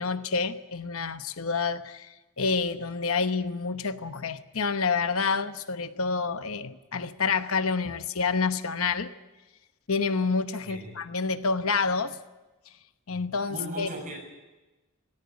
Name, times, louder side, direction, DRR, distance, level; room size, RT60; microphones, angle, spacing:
voice 1, 0.0-9.1 9.9-12.2 13.1-13.9, left 4 dB, 70° left, 1.0 m, -28 dB
voice 2, 10.7-11.0 13.1-13.2 13.5-14.2, equal, 35° right, 7.2 m, -37 dB
18.0 x 17.5 x 9.6 m
head